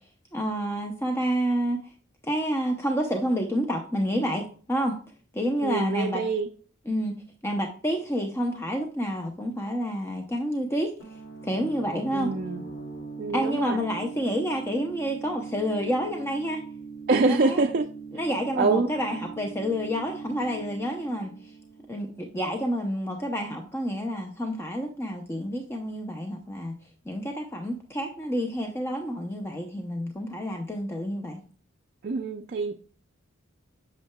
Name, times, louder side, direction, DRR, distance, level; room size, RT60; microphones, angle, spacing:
voice 1, 0.3-1.9 2.2-5.0 5.3-6.2 6.9-12.3 13.3-16.6 17.1-17.6 18.1-21.5 21.9-26.8 27.1-31.4, equal, 10° left, 0.6 m, -29 dB
voice 2, 5.6-6.5 12.1-12.6 13.2-13.8 17.1-17.9 18.5-18.9 32.0-32.7, right 3 dB, 45° right, 0.4 m, -25 dB
sound 1, 11.0-22.5, right 4 dB, 65° left, 2.3 m, -41 dB
8.4 x 6.5 x 2.2 m
head